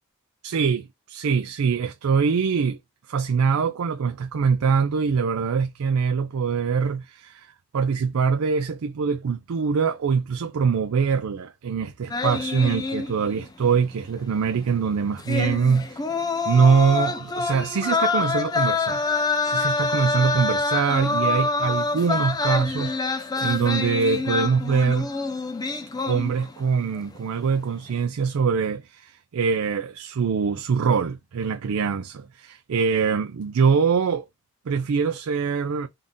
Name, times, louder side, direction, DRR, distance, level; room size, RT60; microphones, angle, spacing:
voice 1, 0.4-2.8 3.1-7.5 7.7-16.0 16.4-19.0 19.4-25.1 26.1-34.2 34.7-35.9, right 5 dB, 75° right, 0.4 m, -23 dB
sound 1, 12.1-13.5 13.8-13.9 15.2-26.6 26.9-27.3, left 3 dB, 15° left, 0.3 m, -26 dB
3.8 x 2.5 x 3.6 m
head